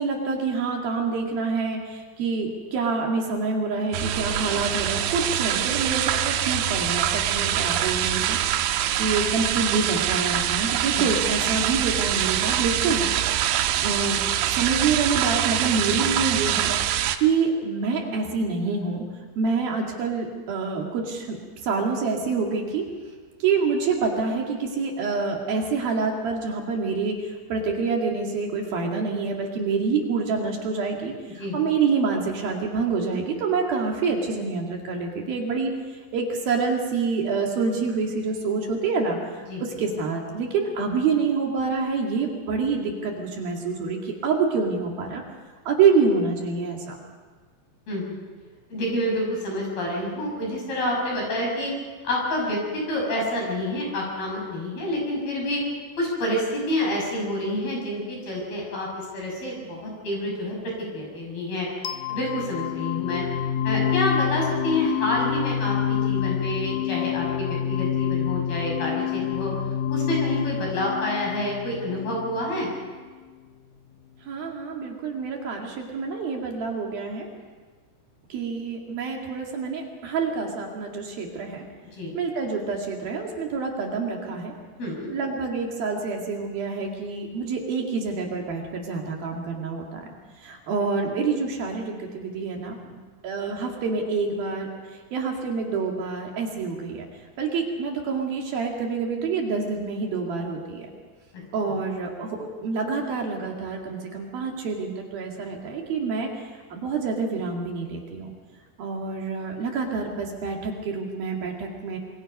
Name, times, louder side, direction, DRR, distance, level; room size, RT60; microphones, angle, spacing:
voice 1, 0.0-8.4 9.0-13.0 13.8-16.7 17.2-19.1 19.4-22.8 23.4-35.7 36.1-45.2 45.7-47.0 74.2-77.3 78.3-81.7 82.1-84.5 85.1-90.1 90.4-93.0 93.2-97.1 97.4-100.9 101.5-106.3 106.7-108.3 108.8-112.0, right 4 dB, 60° right, 0 dB, 3.8 m, -27 dB
sound 1, 3.9-17.2, right 11 dB, 90° right, 3.2 m, -24 dB
voice 2, 47.9-48.2 48.7-51.7 52.0-55.6 56.0-58.9 59.1-60.6 60.9-61.7 62.1-63.2 63.6-69.5 69.9-72.7 81.9-82.2 84.8-85.1, left 1 dB, 55° left, -1 dB, 8.3 m, -28 dB
sound 2, 61.8-72.8, left 10 dB, 85° left, 1.9 m, -27 dB
26.5 x 22.5 x 5.4 m, 1.4 s
omnidirectional pair, 5.1 m